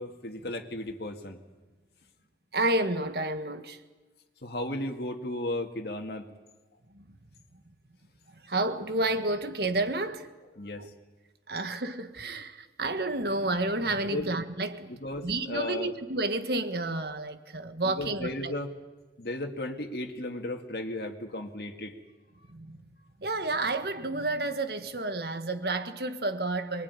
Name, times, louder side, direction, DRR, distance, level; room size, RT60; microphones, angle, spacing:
voice 1, 0.0-1.4 4.4-6.3 10.6-10.9 14.0-14.3 14.9-15.9 17.8-18.7 19.2-22.0, left 1 dB, 60° left, 2.2 m, -35 dB
voice 2, 2.5-3.8 6.9-7.0 8.4-10.3 10.8-10.9 11.5-15.0 15.2-18.5 22.5-22.8 23.2-26.8, right 2 dB, 60° right, 1.6 m, -30 dB
23.5 x 21.5 x 9.7 m
head